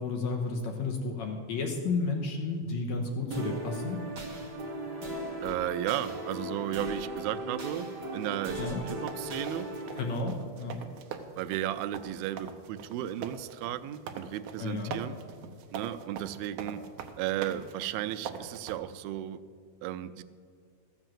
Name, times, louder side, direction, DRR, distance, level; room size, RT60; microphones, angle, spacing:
voice 1, 0.0-4.0 8.5-8.8 10.0-10.8 14.6-15.0, left 3 dB, 65° left, 2 dB, 2.0 m, -32 dB
sound 1, 3.3-10.2, right 1 dB, 45° right, 2.0 m, -38 dB
voice 2, 5.4-9.7 11.4-15.2 15.7-16.8 17.2-19.4 19.8-20.2, right 12 dB, 85° right, 12 dB, 2.4 m, -34 dB
sound 2, 8.2-18.8, right 7 dB, 70° right, 2.1 m, -43 dB
14.0 x 7.9 x 7.5 m, 2.1 s
omnidirectional pair, 4.2 m